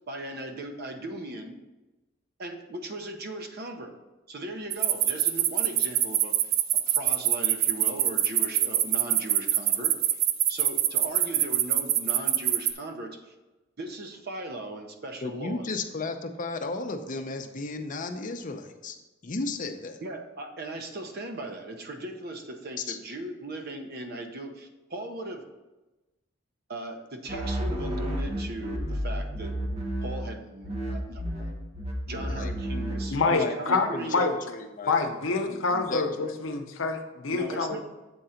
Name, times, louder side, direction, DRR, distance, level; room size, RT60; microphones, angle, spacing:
voice 1, 0.1-1.6 2.4-3.9 4.3-10.2 10.5-13.3 13.8-15.8 20.0-25.4 26.7-29.6 30.0-31.5 32.0-34.3 37.3-37.8, right 1 dB, 50° right, 5 dB, 0.8 m, -38 dB
sound 1, 4.7-12.7, right 12 dB, 90° right, 0.5 m, -24 dB
voice 2, 15.2-19.0 19.2-20.0 22.9-23.0 32.1-32.5 33.3-35.0 35.5-36.5, left 3 dB, 40° left, 6 dB, 0.6 m, -34 dB
sound 2, 27.3-30.4 30.6-33.2, equal, 30° right, 1.1 m, -31 dB
voice 3, 33.1-34.3 34.9-37.8, left 3 dB, 80° left, 5 dB, 0.8 m, -27 dB
7.8 x 3.8 x 5.7 m, 1.1 s
head